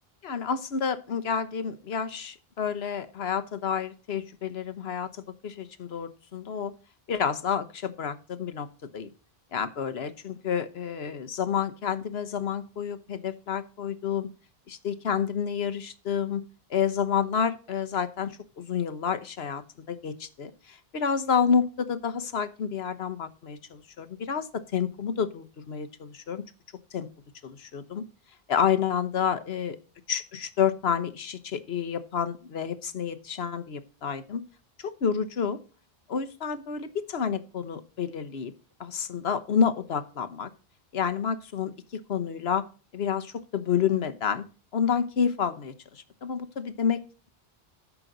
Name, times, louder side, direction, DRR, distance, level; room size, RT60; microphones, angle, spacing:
voice 1, 0.2-6.7 7.1-8.7 8.9-9.1 9.5-14.3 14.7-16.4 16.7-19.6 19.9-26.5 26.9-27.1 27.4-28.0 28.5-29.8 30.1-34.4 34.8-35.6 36.1-38.5 38.8-40.5 40.9-42.7 42.9-44.5 44.7-47.0, left 7 dB, 85° left, 12 dB, 1.2 m, -29 dB
14.0 x 6.1 x 3.9 m, 0.36 s
omnidirectional pair, 1.0 m